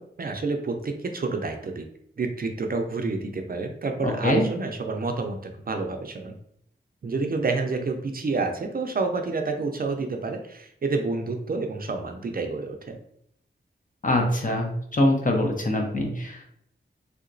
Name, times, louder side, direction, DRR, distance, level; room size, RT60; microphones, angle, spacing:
voice 1, 0.2-1.9 2.2-6.3 7.0-13.0, right 3 dB, 50° right, 5 dB, 0.4 m, -29 dB
voice 2, 4.0-4.5 14.0-16.5, left 1 dB, 45° left, 2 dB, 0.7 m, -24 dB
3.4 x 2.8 x 2.6 m, 0.70 s
wide cardioid pair, 95°, 20 cm